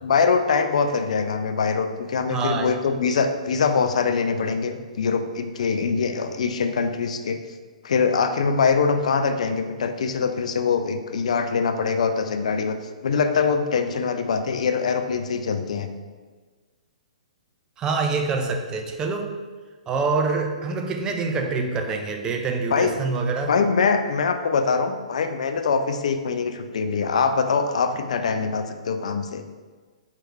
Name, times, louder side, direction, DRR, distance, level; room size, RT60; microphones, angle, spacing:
voice 1, 0.0-7.4 7.8-12.8 13.0-15.9 22.7-22.9 23.5-29.4, left 5 dB, 60° left, 8 dB, 0.3 m, -23 dB
voice 2, 2.3-2.7 17.8-19.3 19.9-23.5, right 4 dB, 15° right, 4 dB, 0.3 m, -25 dB
4.7 x 3.0 x 2.3 m, 1.4 s
figure-of-eight pair, 120°, 4 cm